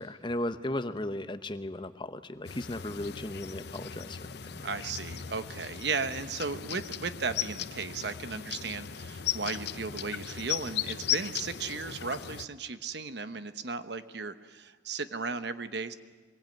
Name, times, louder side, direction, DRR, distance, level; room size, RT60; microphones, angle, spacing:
voice 1, 0.0-4.2 4.5-4.7, left 1 dB, 25° left, 11 dB, 1.0 m, -36 dB
sound 1, 2.4-12.5, left 9 dB, 55° left, 0.7 m, -37 dB
voice 2, 4.6-15.9, right 4 dB, 60° right, 11 dB, 1.1 m, -35 dB
24.0 x 22.0 x 9.2 m, 1.4 s
head